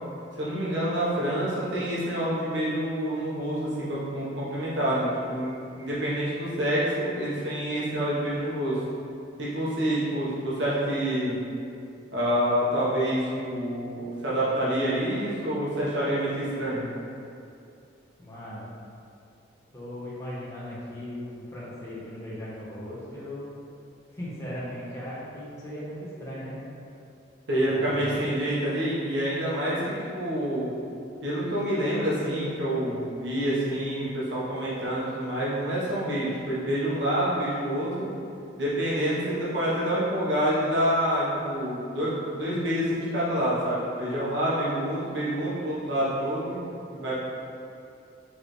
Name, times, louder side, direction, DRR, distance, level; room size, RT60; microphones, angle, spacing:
voice 1, 0.4-8.8 9.4-11.4 12.1-16.9 27.5-30.7 31.2-38.1 38.6-46.6 46.9-47.2, equal, 70° right, -8 dB, 1.0 m, -27 dB
voice 2, 18.2-18.7 19.7-23.5 24.1-26.6 27.7-27.9, left 1 dB, 15° left, -9 dB, 1.0 m, -38 dB
4.7 x 3.4 x 3.1 m, 2.5 s
head